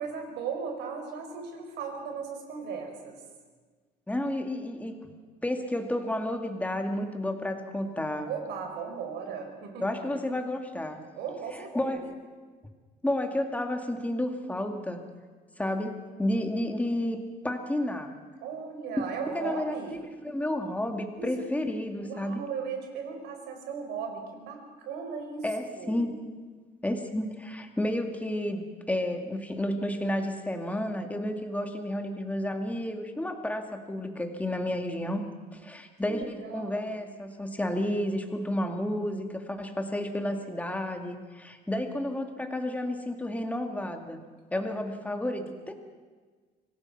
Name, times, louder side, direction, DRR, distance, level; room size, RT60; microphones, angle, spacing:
voice 1, 0.0-3.2 8.2-10.0 11.2-12.0 18.4-20.1 21.1-21.5 22.0-26.1 36.0-37.0, right 6 dB, 80° right, 4 dB, 4.6 m, -37 dB
voice 2, 4.1-5.1 5.4-8.3 9.8-11.0 11.7-12.1 13.0-15.0 15.6-18.1 19.3-19.7 20.2-22.4 25.4-26.1 26.8-35.2 35.5-44.2 44.5-45.7, left 1 dB, 10° left, 5 dB, 2.2 m, -31 dB
25.5 x 17.5 x 6.0 m, 1.5 s
cardioid pair, 110°, 17 cm